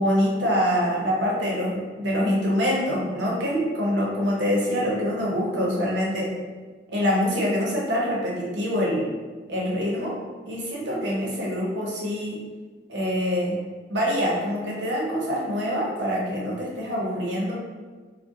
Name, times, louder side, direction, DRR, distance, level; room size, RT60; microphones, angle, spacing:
voice 1, 0.0-6.3 6.9-9.1 9.5-10.2 10.4-12.4 12.9-13.6 13.9-17.5, equal, 80° right, -4 dB, 0.7 m, -25 dB
2.7 x 2.0 x 2.3 m, 1.4 s
head